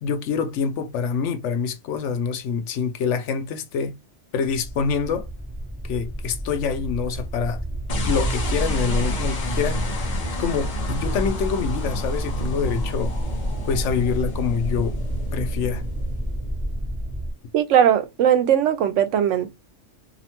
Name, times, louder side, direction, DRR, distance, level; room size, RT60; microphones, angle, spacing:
voice 1, 0.0-3.9 4.3-5.3 5.8-7.6 8.1-9.8 10.4-13.2 13.7-15.0 15.3-15.8, left 6 dB, 80° left, 0.9 m, -26 dB
sound 1, 4.4-17.3, right 1 dB, 20° right, 0.8 m, -30 dB
sound 2, 7.9-17.3, equal, 45° left, 0.6 m, -30 dB
voice 2, 17.5-19.5, right 9 dB, 85° right, 0.9 m, -19 dB
2.9 x 2.0 x 2.8 m
omnidirectional pair, 1.2 m